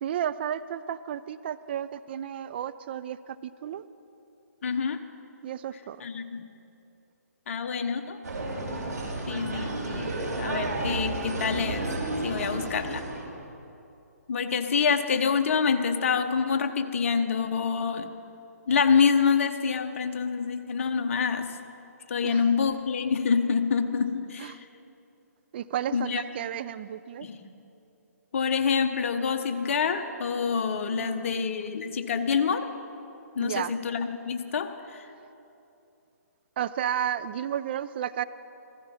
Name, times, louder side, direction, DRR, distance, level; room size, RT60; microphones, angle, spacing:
voice 1, 0.0-3.8 5.4-6.0 22.2-22.6 24.4-24.6 25.5-27.3 30.9-31.6 33.4-33.7 36.6-38.2, right 10 dB, 35° right, 14 dB, 0.4 m, -33 dB
voice 2, 4.6-5.0 6.0-6.4 7.5-8.2 9.3-11.9 12.2-13.1 14.3-18.1 18.7-21.5 22.1-24.6 25.9-26.2 27.2-27.4 28.3-32.7 33.4-35.1, left 6 dB, 50° left, 7 dB, 1.1 m, -26 dB
sound 1, 8.2-13.2, right 2 dB, 70° right, 4.8 m, -32 dB
15.5 x 15.5 x 5.7 m, 2.8 s
figure-of-eight pair, 140°, 9 cm